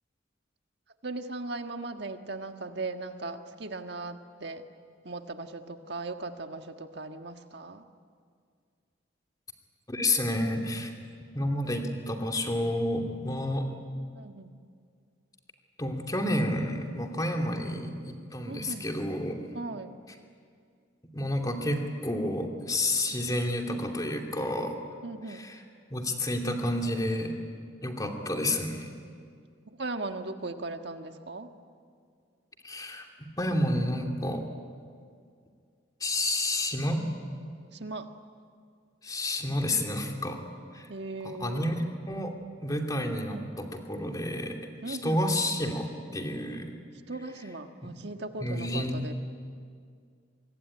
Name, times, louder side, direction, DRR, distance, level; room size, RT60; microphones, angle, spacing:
voice 1, 1.0-4.6 5.0-7.8 14.1-14.5 18.5-18.9 19.5-19.9 25.0-25.5 29.7-31.5 37.7-38.1 40.9-41.7 43.1-43.5 44.8-45.4 47.1-49.1, right 3 dB, 60° right, 6 dB, 1.6 m, -38 dB
voice 2, 9.9-10.9 11.3-13.7 15.8-19.4 21.1-24.8 25.3-25.6 25.9-27.3 27.8-28.9 32.6-33.1 33.4-34.4 36.0-37.0 39.0-40.4 40.7-40.9 41.2-41.8 42.1-42.3 42.6-44.6 44.9-46.7 48.4-49.0, left 1 dB, 20° left, 3 dB, 2.7 m, -30 dB
25.0 x 23.0 x 9.9 m, 2.2 s
head